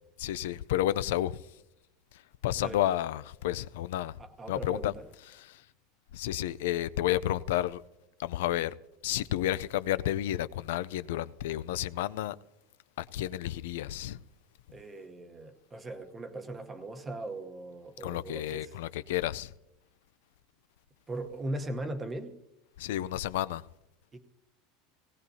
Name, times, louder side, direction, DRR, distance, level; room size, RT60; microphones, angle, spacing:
voice 1, 0.2-1.4 2.4-4.2 4.5-4.9 5.4-5.6 6.1-7.8 8.2-8.7 9.0-12.4 13.0-14.2 18.0-19.5 22.8-23.6, left 13 dB, 80° left, 0.4 m, -31 dB
voice 2, 4.2-5.1 14.7-18.8 21.1-22.4 24.1-24.2, right 2 dB, 15° right, 0.9 m, -39 dB
18.5 x 17.0 x 2.7 m
supercardioid pair, 165°, 0 cm